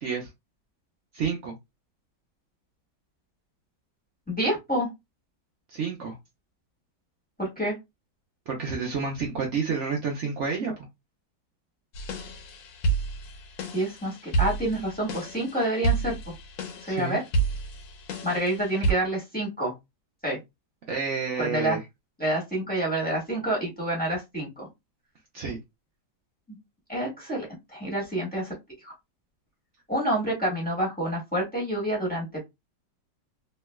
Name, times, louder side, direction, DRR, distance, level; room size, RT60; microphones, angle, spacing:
voice 1, 1.1-1.5 5.7-6.2 8.5-10.9 16.9-17.2 20.9-21.8 25.3-25.6, right 5 dB, 90° right, 0.6 m, -29 dB
voice 2, 4.3-4.9 7.4-7.7 13.7-16.3 16.9-17.2 18.2-19.7 20.2-20.4 21.4-21.8 22.2-24.7 26.9-27.5 27.7-28.5 28.8-28.9 29.9-32.4, right 1 dB, 5° left, 1.2 m, -28 dB
sound 1, 11.9-18.9, right 4 dB, 75° left, 1.5 m, -30 dB
3.3 x 2.9 x 2.2 m
omnidirectional pair, 2.2 m